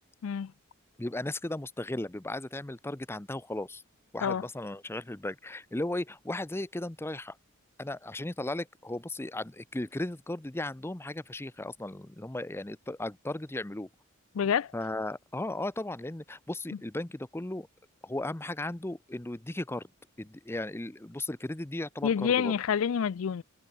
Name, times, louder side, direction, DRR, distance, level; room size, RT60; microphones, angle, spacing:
voice 1, 1.0-3.8 4.1-7.4 7.8-13.9 14.7-17.7 18.0-19.9 20.2-22.6, left 1 dB, 10° left, 0.6 m, -36 dB
voice 2, 14.3-14.7 22.0-23.4, left 7 dB, 70° left, 0.4 m, -27 dB
head